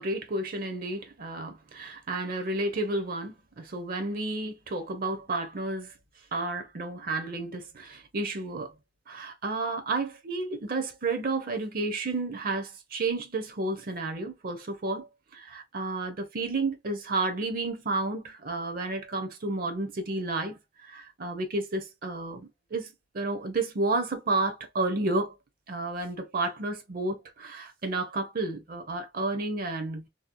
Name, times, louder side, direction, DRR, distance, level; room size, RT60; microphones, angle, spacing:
voice 1, 0.0-5.9 6.3-8.7 9.1-15.1 15.3-22.9 23.1-25.3 25.7-30.1, right 2 dB, 50° right, 0.5 m, -31 dB
2.7 x 2.0 x 2.4 m
head